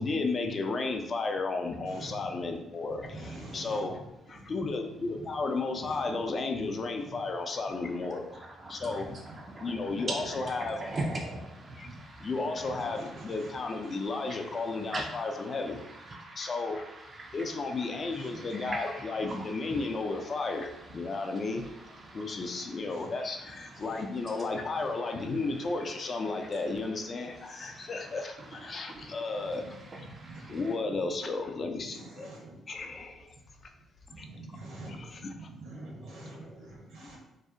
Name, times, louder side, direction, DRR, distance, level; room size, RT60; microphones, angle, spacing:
voice 1, 0.0-4.0 4.3-8.3 8.7-9.1 9.6-10.9 11.8-11.9 12.2-15.8 16.4-16.8 17.3-21.7 22.1-29.7 30.4-32.3 32.7-33.3 34.2-34.3 34.8-35.3, left 3 dB, 45° left, 4 dB, 0.3 m, -33 dB
voice 2, 1.8-2.3 3.0-3.9 4.4-4.5 5.1-5.2 5.8-6.2 7.0-7.2 9.9-10.0 10.8-10.9 11.8-12.0 12.7-13.5 18.1-18.6 19.2-19.4 22.3-22.4 22.9-23.0 23.7-24.0 25.5-25.6 29.6-29.8 30.1-30.9 31.8-32.6 34.1-37.2, right 2 dB, 80° right, -3 dB, 0.9 m, -46 dB
voice 3, 8.3-10.2 10.4-12.3 13.2-13.3 13.9-14.0 14.3-17.5 17.9-19.8 21.6-22.4 27.4-27.9 28.7-29.4 30.1-30.6, right 2 dB, 40° right, 1 dB, 0.3 m, -41 dB
2.6 x 2.0 x 2.5 m, 0.92 s
supercardioid pair, 75°, 0 cm